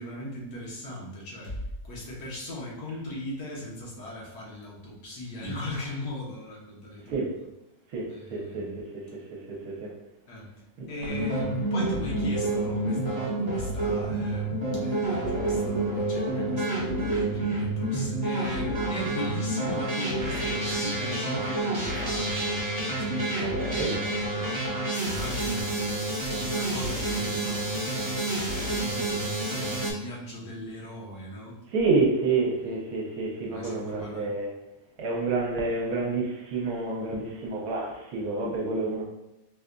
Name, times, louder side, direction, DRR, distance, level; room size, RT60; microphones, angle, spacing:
voice 1, 0.0-7.2 8.1-8.8 10.3-10.5 10.9-26.0 26.3-31.6 32.6-32.7 33.4-34.3 38.8-38.9, left 1 dB, 80° left, -4 dB, 1.6 m, -39 dB
voice 2, 7.9-8.6 9.5-9.9 10.8-10.9 23.4-24.0 31.7-34.5 35.0-39.0, right 3 dB, 65° right, -2 dB, 1.1 m, -28 dB
sound 1, 11.1-29.9, right 2 dB, 20° right, 0.9 m, -29 dB
4.7 x 2.5 x 2.2 m, 0.93 s
omnidirectional pair, 1.7 m